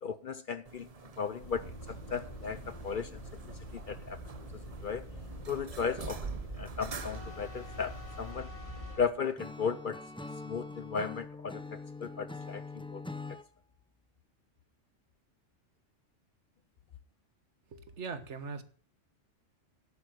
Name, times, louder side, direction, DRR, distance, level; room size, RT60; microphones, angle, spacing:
voice 1, 0.0-3.4 3.7-4.2 4.8-5.1 5.5-8.5 9.0-10.0 10.4-13.0, left 6 dB, 50° left, 0.7 m, -36 dB
sound 1, 0.7-8.3, right 5 dB, 35° right, 0.8 m, -46 dB
sound 2, 1.4-9.1, equal, 25° left, 3.7 m, -45 dB
Acoustic guitar / Strum, 9.4-13.5, left 3 dB, 5° left, 0.4 m, -43 dB
voice 2, 17.7-18.6, right 5 dB, 65° right, 1.5 m, -40 dB
11.0 x 8.3 x 6.5 m
omnidirectional pair, 1.3 m